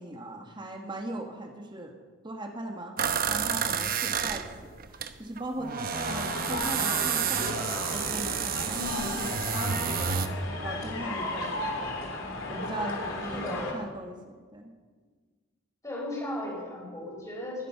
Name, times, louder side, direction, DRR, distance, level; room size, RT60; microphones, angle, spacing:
voice 1, 0.0-1.9 2.2-7.6 7.9-10.3 10.6-12.0 12.5-14.7, right 1 dB, 25° right, 3 dB, 1.5 m, -39 dB
sound 1, 3.0-5.1 5.4-10.3, right 7 dB, 45° right, 0.8 m, -30 dB
sound 2, 5.9-13.7, left 2 dB, 80° left, 3.1 m, -35 dB
voice 2, 8.7-9.0 13.3-13.8 15.8-17.7, left 1 dB, 15° left, -2 dB, 5.0 m, -36 dB
21.5 x 10.5 x 5.7 m, 1.5 s
head